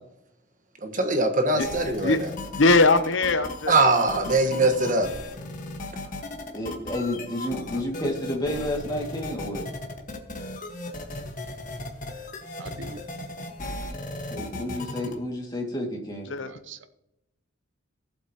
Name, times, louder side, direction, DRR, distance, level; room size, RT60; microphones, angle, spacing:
voice 1, 0.8-2.1 3.7-5.1, right 2 dB, 40° right, 6 dB, 1.3 m, -22 dB
sound 1, 1.6-15.1, left 2 dB, 40° left, 1.5 m, -36 dB
voice 2, 2.5-3.8 16.3-16.5, left 3 dB, 65° left, 10 dB, 0.8 m, -20 dB
voice 3, 6.5-9.7 14.3-16.3, left 1 dB, 20° left, -1 dB, 2.1 m, -30 dB
voice 4, 12.6-13.0 16.5-16.9, right 3 dB, 60° right, 12 dB, 0.6 m, -42 dB
18.0 x 8.0 x 2.9 m, 0.88 s
head